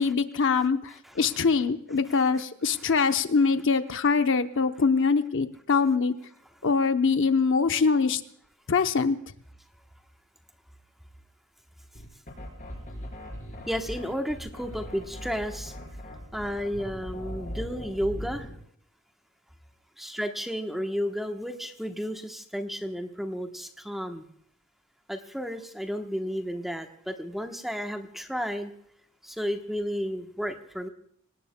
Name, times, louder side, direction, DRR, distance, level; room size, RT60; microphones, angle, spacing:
voice 1, 0.0-6.1 6.6-8.2 8.7-9.2, left 5 dB, 60° left, 8 dB, 0.8 m, -23 dB
sound 1, 11.9-18.6, equal, 35° left, 4.7 m, -39 dB
voice 2, 13.7-15.7 16.3-18.5 20.0-24.3 25.1-28.7 29.2-30.9, equal, ahead, 4 dB, 1.0 m, -32 dB
25.5 x 18.5 x 2.2 m, 0.70 s
head